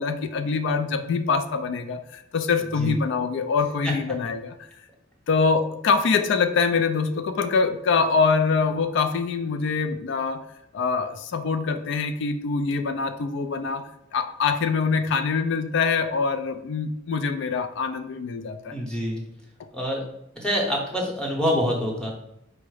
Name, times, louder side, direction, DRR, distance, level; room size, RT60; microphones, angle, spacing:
voice 1, 0.0-4.5 5.3-10.4 10.7-13.8 14.1-18.8, left 5 dB, 60° left, 8 dB, 0.3 m, -24 dB
voice 2, 18.7-19.2 19.7-20.0 20.4-22.1, equal, 5° left, -2 dB, 0.8 m, -26 dB
4.6 x 2.0 x 4.6 m, 0.82 s
head